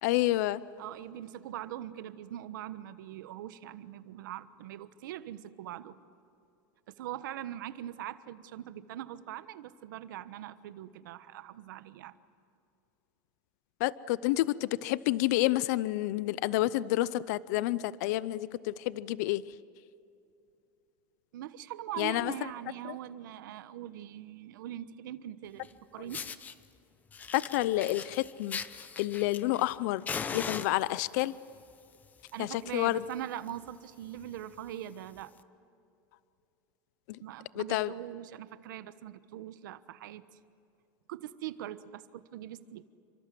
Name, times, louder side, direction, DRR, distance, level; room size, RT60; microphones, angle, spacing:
voice 1, 0.0-0.6 13.8-19.5 22.0-22.3 22.8-23.0 27.3-28.6 29.0-31.4 32.4-33.0 37.1-37.2 37.5-37.9, left 16 dB, 60° left, 18 dB, 0.6 m, -29 dB
voice 2, 0.8-6.0 6.9-12.1 21.3-25.7 25.9-26.3 32.3-35.3 37.2-40.4 41.1-42.9, right 12 dB, 85° right, 13 dB, 1.2 m, -42 dB
Fire, 25.6-25.7 26.1-26.5 27.1-29.7 30.1-31.2 32.0-32.3 32.6-32.7 33.1-33.2 33.4-33.7 34.2-34.3 35.3-35.4, left 6 dB, 15° left, 0.9 m, -39 dB
29.5 x 25.0 x 7.7 m, 2.7 s
supercardioid pair, 165°, 10 cm